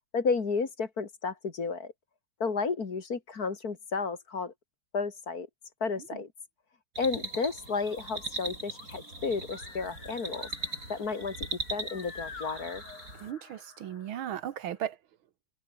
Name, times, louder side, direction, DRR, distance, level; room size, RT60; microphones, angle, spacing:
voice 1, 0.1-1.9 2.4-4.5 4.9-5.5 5.8-6.3 7.0-10.5 10.9-12.8, left 4 dB, 45° left, 2.5 m, -32 dB
sound 1, 7.0-13.3, right 2 dB, 40° right, 8.4 m, -40 dB
sound 2, 7.2-14.8, left 4 dB, 90° left, 4.6 m, -50 dB
voice 2, 13.2-15.0, right 10 dB, 75° right, 1.9 m, -36 dB
omnidirectional pair, 2.3 m